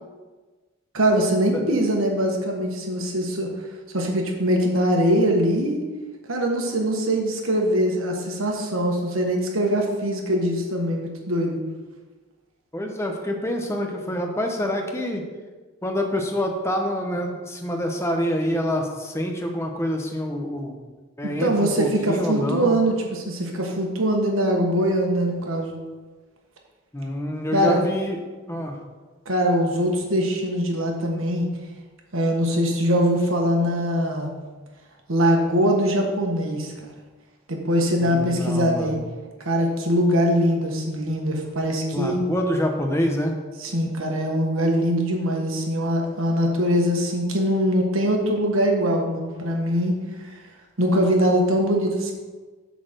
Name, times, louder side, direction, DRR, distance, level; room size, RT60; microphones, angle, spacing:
voice 1, 0.9-3.5 3.9-5.8 6.3-11.6 21.2-25.7 27.5-27.8 29.2-31.4 32.1-34.3 35.1-36.7 37.5-39.0 39.4-42.2 43.6-50.0 50.3-50.4 50.8-52.1, equal, 65° right, 1 dB, 1.4 m, -22 dB
voice 2, 12.7-15.2 15.8-20.7 21.2-22.8 26.9-28.2 28.5-28.7 38.0-39.0 41.9-43.3, equal, 10° left, 3 dB, 0.9 m, -26 dB
7.8 x 4.2 x 6.7 m, 1.3 s
head